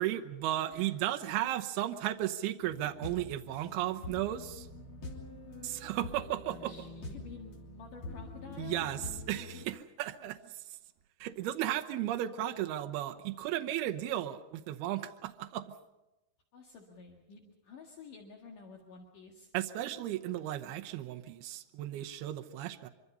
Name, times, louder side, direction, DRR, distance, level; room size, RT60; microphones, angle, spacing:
voice 1, 0.0-4.7 5.6-6.7 8.6-9.0 9.3-10.5 11.2-15.7 19.5-22.9, right 13 dB, 85° right, 7 dB, 2.9 m, -35 dB
voice 2, 1.2-1.5 6.5-8.9 16.5-19.5, left 5 dB, 60° left, 1 dB, 3.3 m, -50 dB
sound 1, 2.6-9.6, left 2 dB, 35° left, 3.5 m, -45 dB
24.5 x 24.0 x 5.5 m, 1.0 s
omnidirectional pair, 4.4 m